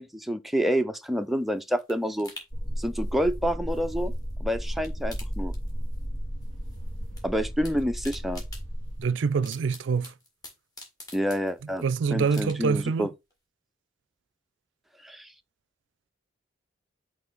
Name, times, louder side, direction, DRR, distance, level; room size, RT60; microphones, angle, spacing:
voice 1, 0.0-2.3 2.8-4.1 4.4-5.5 7.2-8.4 11.1-11.8 12.1-13.1 15.0-15.3, equal, ahead, 0.4 m, -28 dB
sound 1, 1.1-4.3 4.6-6.2 6.4-7.2 7.5-11.8 12.3-12.9 13.3-13.4, left 2 dB, 20° left, 1.8 m, -48 dB
sound 2, 2.5-9.0, equal, 80° left, 2.2 m, -33 dB
voice 2, 9.0-10.1 11.8-13.1, right 5 dB, 65° right, 0.4 m, -25 dB
5.7 x 3.2 x 5.1 m
head